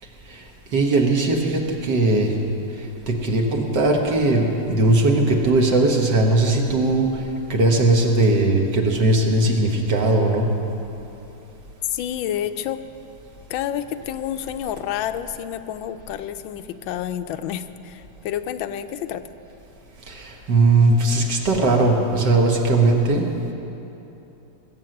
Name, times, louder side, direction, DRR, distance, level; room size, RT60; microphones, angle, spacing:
voice 1, 0.7-2.3 3.1-7.1 7.5-10.5 20.1-23.2, right 2 dB, 65° right, 1 dB, 2.1 m, -19 dB
voice 2, 11.9-12.8 13.5-19.2, left 10 dB, 85° left, 10 dB, 1.4 m, -29 dB
20.0 x 7.8 x 7.8 m, 2.9 s
omnidirectional pair, 2.1 m